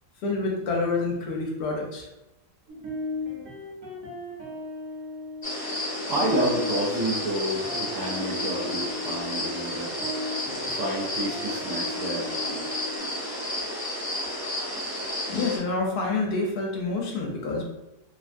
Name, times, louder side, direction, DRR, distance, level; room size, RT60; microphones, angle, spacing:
voice 1, 0.2-2.0 15.3-17.6, left 3 dB, 70° left, -1 dB, 1.1 m, -27 dB
sound 1, 2.7-13.0, left 2 dB, 50° right, 1.1 m, -37 dB
sound 2, 5.4-15.6, left 1 dB, 25° left, 1.1 m, -32 dB
voice 2, 5.9-9.9 10.4-12.7 13.1-13.6, right 1 dB, 65° right, -5 dB, 0.8 m, -30 dB
3.3 x 2.2 x 2.5 m, 0.93 s
omnidirectional pair, 1.9 m